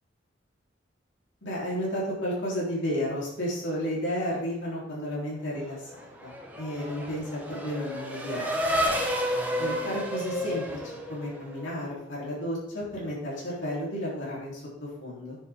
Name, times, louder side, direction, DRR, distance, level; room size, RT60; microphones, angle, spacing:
voice 1, 1.4-8.5 9.6-15.4, equal, 90° left, -5 dB, 3.6 m, -32 dB
Race car auto racing / Accelerating revving vroom, 5.7-11.8, equal, 10° right, 1.3 m, -31 dB
9.8 x 7.5 x 3.7 m, 0.87 s
head